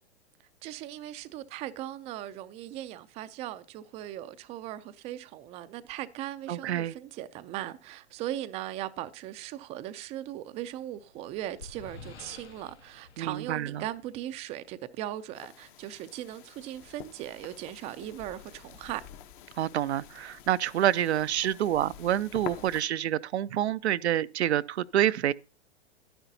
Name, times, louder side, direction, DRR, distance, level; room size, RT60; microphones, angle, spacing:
voice 1, 0.6-19.0, right 13 dB, 20° right, 0.4 m, -38 dB
voice 2, 6.5-6.9 13.2-13.8 19.6-25.3, right 11 dB, 80° right, 0.5 m, -27 dB
sound 1, 10.8-14.4, left 4 dB, 85° left, 1.7 m, -50 dB
sound 2, 15.3-22.8, left 11 dB, 45° left, 0.9 m, -47 dB
12.0 x 10.0 x 2.7 m
hypercardioid pair, 115°, 33 cm